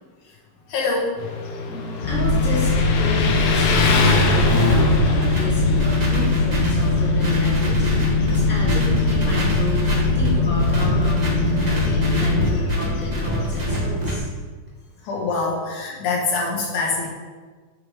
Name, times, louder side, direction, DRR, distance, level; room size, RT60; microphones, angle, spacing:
voice 1, 0.7-1.2 15.0-17.1, left 3 dB, 85° left, -2 dB, 2.9 m, -24 dB
Motorcycle, 1.2-13.8, left 3 dB, 70° left, 1.4 m, -27 dB
voice 2, 1.6-14.2, right 1 dB, 5° right, -7 dB, 1.9 m, -32 dB
sound 1, 2.0-12.5, left 3 dB, 50° left, 2.0 m, -21 dB
sound 2, 4.0-14.2, equal, 30° right, 0.8 m, -25 dB
7.0 x 6.6 x 5.0 m, 1.4 s
omnidirectional pair, 3.4 m